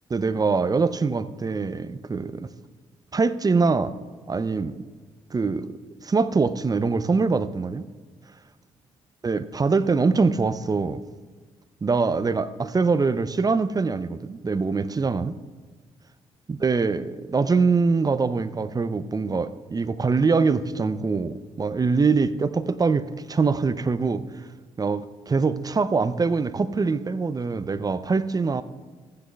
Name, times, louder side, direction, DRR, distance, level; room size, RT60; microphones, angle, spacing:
voice 1, 0.1-2.5 3.1-3.9 4.3-4.9 5.3-7.9 9.2-11.0 11.8-15.3 16.5-24.3 24.8-28.6, right 4 dB, 25° right, 0.6 m, -23 dB
15.0 x 9.8 x 2.3 m
hypercardioid pair, 45°, 14 cm